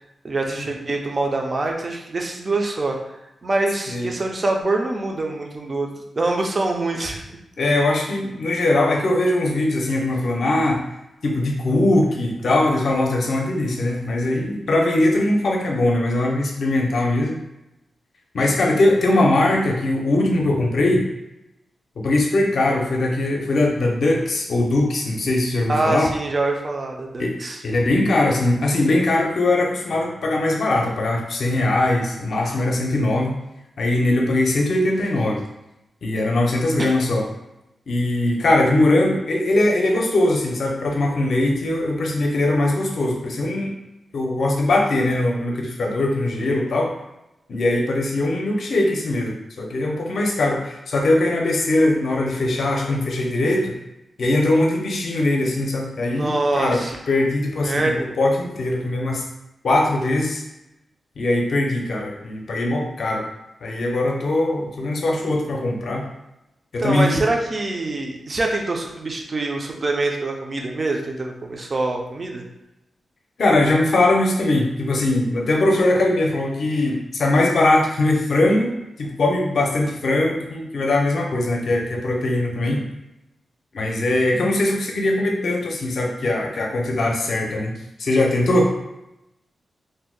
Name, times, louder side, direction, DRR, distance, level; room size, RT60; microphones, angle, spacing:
voice 1, 0.2-3.0 3.4-7.2 25.7-27.6 36.8-36.9 56.1-57.0 57.6-58.1 66.8-72.4, right 2 dB, 30° right, 1 dB, 0.4 m, -24 dB
voice 2, 7.6-10.8 11.2-17.4 18.3-21.1 22.0-26.1 27.2-27.4 27.6-33.4 33.8-35.4 36.0-37.3 37.9-43.7 44.1-46.9 47.5-53.8 54.2-59.2 59.6-60.4 61.2-63.3 63.6-66.1 66.7-67.3 73.4-82.9 83.7-87.7 88.0-88.7, left 2 dB, 55° left, 1 dB, 0.5 m, -21 dB
2.6 x 2.0 x 3.7 m, 0.90 s
wide cardioid pair, 170°, 0 cm